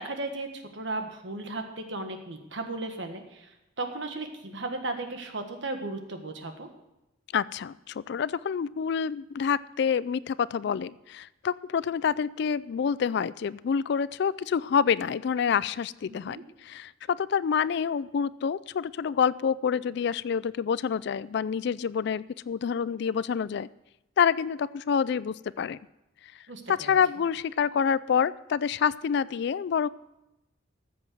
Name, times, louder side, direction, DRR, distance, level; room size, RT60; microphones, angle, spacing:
voice 1, 0.0-6.7 16.0-16.4 26.5-27.0, right 2 dB, 65° right, 5 dB, 1.5 m, -36 dB
voice 2, 7.3-23.7 24.2-25.8 26.7-29.9, left 7 dB, 55° left, 19 dB, 0.3 m, -27 dB
14.0 x 7.7 x 6.1 m, 0.92 s
head